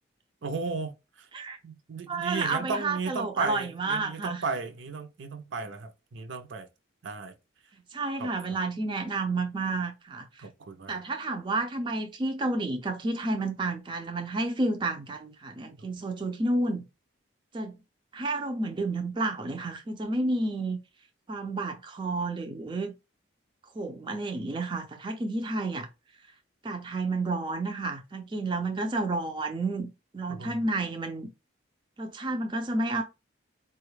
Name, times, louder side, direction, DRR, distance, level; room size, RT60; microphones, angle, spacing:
voice 1, 0.4-1.3 1.6-6.7 7.0-7.3 8.2-8.3 10.4-11.0 15.8-15.9 30.3-30.6, right 4 dB, 70° right, 0.6 m, -35 dB
voice 2, 2.1-4.4 7.9-10.5 10.9-16.8 17.5-17.8 18.1-20.8 21.3-22.9 23.8-25.9 26.6-29.9 30.1-31.3 32.0-33.0, right 2 dB, 25° right, 0.3 m, -30 dB
4.2 x 2.2 x 3.1 m
head